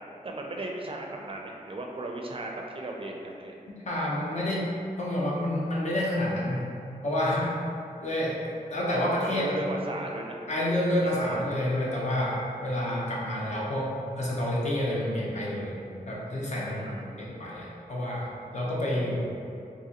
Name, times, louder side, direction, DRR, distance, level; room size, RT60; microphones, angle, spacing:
voice 1, 0.0-3.6 9.3-10.4 11.0-11.5 16.7-17.5, right 2 dB, 35° right, 0 dB, 0.4 m, -36 dB
voice 2, 3.9-4.6 5.0-6.7 7.0-7.5 8.0-9.6 10.5-15.7 16.1-16.9 17.2-18.3 18.5-19.2, left 1 dB, 50° left, -5 dB, 0.8 m, -29 dB
3.9 x 2.7 x 2.9 m, 2.6 s
wide cardioid pair, 100°, 15 cm